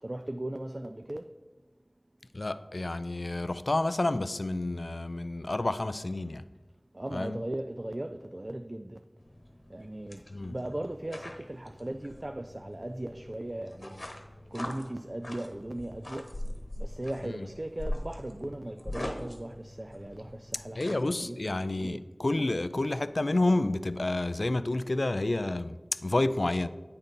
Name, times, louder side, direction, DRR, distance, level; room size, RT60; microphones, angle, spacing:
voice 1, 0.0-1.3 6.9-9.0 9.7-14.1 14.5-16.3 16.8-21.4 21.8-22.0, right 1 dB, 45° right, 0.4 m, -38 dB
voice 2, 2.3-6.4 7.1-7.4 10.3-10.6 17.2-17.5 20.8-26.7, left 2 dB, 85° left, 0.3 m, -29 dB
sound 1, 9.2-21.1, left 1 dB, 60° left, 1.1 m, -42 dB
8.8 x 4.1 x 5.2 m
wide cardioid pair, 40°, 0 cm